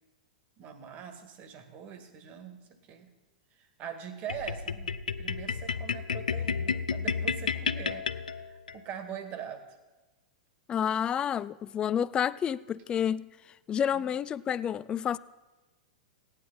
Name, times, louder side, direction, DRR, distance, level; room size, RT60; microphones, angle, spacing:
voice 1, 0.6-3.1 3.6-9.6 13.9-14.1, right 8 dB, 35° right, 1.8 m, -43 dB
sound 1, 4.3-8.8, left 5 dB, 80° left, 0.5 m, -32 dB
voice 2, 10.7-13.3 13.7-15.2, left 8 dB, 20° left, 0.3 m, -29 dB
17.0 x 9.5 x 4.1 m
figure-of-eight pair, 100°, 4 cm